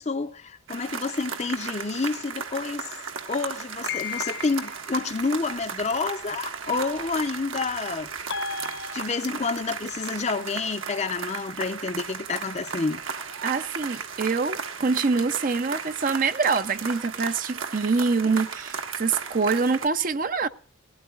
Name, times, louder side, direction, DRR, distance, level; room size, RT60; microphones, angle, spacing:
voice 1, 0.0-3.0 3.3-8.3 8.9-13.0, left 4 dB, 35° left, 0.6 m, -29 dB
sound 1, 0.7-19.9, right 6 dB, 75° right, 1.6 m, -35 dB
sound 2, 3.9-4.8 8.3-9.5, left 6 dB, 60° left, 1.0 m, -34 dB
voice 2, 13.4-20.5, right 4 dB, 40° right, 0.6 m, -25 dB
18.5 x 17.0 x 2.4 m
head